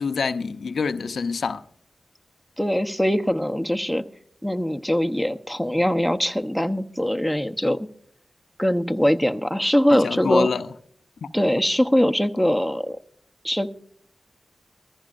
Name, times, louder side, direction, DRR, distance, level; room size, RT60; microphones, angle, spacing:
voice 1, 0.0-1.6 9.9-10.7 11.2-11.3, left 5 dB, 85° left, 0.6 m, -26 dB
voice 2, 2.6-4.0 4.4-7.9 8.6-10.5 11.3-13.0 13.4-13.7, equal, ahead, 0.9 m, -22 dB
21.0 x 14.5 x 2.5 m
cardioid pair, 50°, 0 cm